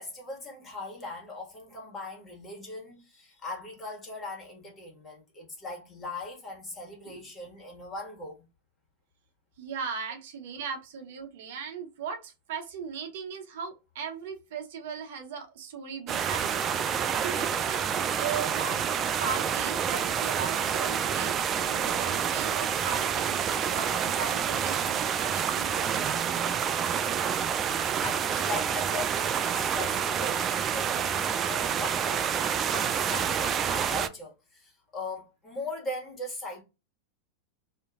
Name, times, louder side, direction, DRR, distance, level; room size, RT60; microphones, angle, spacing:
voice 1, 0.0-8.4 25.4-25.6 28.0-36.6, left 2 dB, 25° left, 1.5 m, -40 dB
voice 2, 9.6-23.4 23.7-26.7 27.1-27.4, right 6 dB, 65° right, 0.6 m, -38 dB
sound 1, 16.1-34.1, right 8 dB, 35° right, 0.3 m, -28 dB
2.7 x 2.5 x 2.3 m
hypercardioid pair, 95°, 0 cm